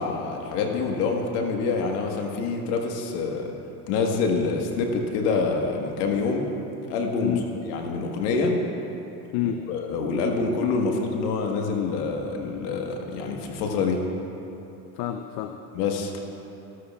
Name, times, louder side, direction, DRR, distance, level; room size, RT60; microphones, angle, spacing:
voice 1, 0.0-3.5 3.9-6.5 6.9-7.4 7.7-8.6 9.7-14.0 15.7-16.1, left 4 dB, 75° left, 2 dB, 1.5 m, -26 dB
voice 2, 9.3-9.7 14.9-15.6, left 10 dB, 55° left, 7 dB, 0.6 m, -28 dB
15.0 x 12.5 x 2.4 m, 2.9 s
supercardioid pair, 115°, 47 cm